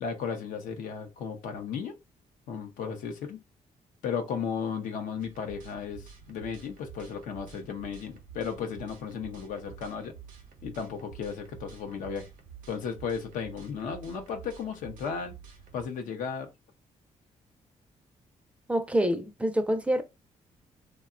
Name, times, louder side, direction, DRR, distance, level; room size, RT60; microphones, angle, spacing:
voice 1, 0.0-2.0 2.5-3.4 4.0-10.2 10.6-12.3 12.7-15.3 15.7-16.5, left 6 dB, 85° left, 0.6 m, -35 dB
sound 1, 5.2-15.8, right 7 dB, 85° right, 0.6 m, -49 dB
voice 2, 18.7-20.0, equal, 10° right, 0.4 m, -26 dB
2.8 x 2.2 x 2.4 m
cardioid pair, 85°, 13 cm